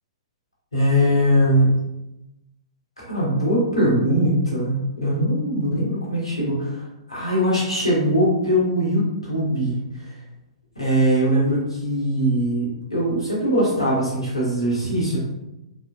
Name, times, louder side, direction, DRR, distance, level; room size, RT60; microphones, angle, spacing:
voice 1, 0.7-1.7 3.0-10.1 10.8-15.2, equal, 85° left, -6 dB, 1.2 m, -21 dB
3.4 x 2.6 x 2.4 m, 0.93 s
figure-of-eight pair, 110°, 3 cm